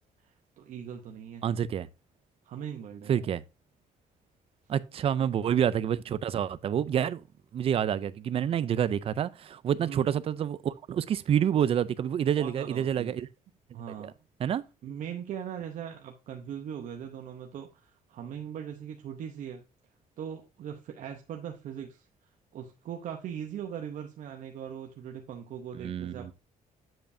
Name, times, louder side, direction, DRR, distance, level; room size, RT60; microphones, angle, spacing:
voice 1, 0.2-1.5 2.4-3.3 9.8-10.1 12.4-13.1 13.7-14.1 14.8-19.6 20.2-22.1 22.5-26.3, right 8 dB, 60° right, 0.8 m, -40 dB
voice 2, 1.4-1.9 3.1-3.4 4.7-7.2 7.5-13.3 14.0-14.1 14.4-14.6 25.7-26.3, right 9 dB, 40° right, 0.4 m, -28 dB
7.7 x 6.9 x 2.6 m
cardioid pair, 155°, 14 cm